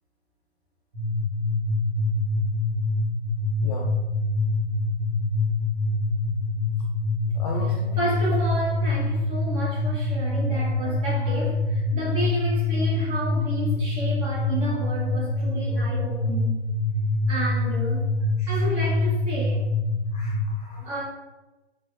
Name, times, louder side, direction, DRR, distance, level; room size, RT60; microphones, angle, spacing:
sound 1, 0.9-20.5, left 2 dB, 60° right, 1.1 m, -25 dB
voice 1, 7.3-8.1 18.4-18.7 20.1-20.8, left 3 dB, 40° left, 0.4 m, -36 dB
voice 2, 8.0-16.6 17.3-18.1 18.5-19.6 20.7-21.0, right 1 dB, 15° right, 0.8 m, -31 dB
4.2 x 2.2 x 2.4 m
figure-of-eight pair, 120°, 34 cm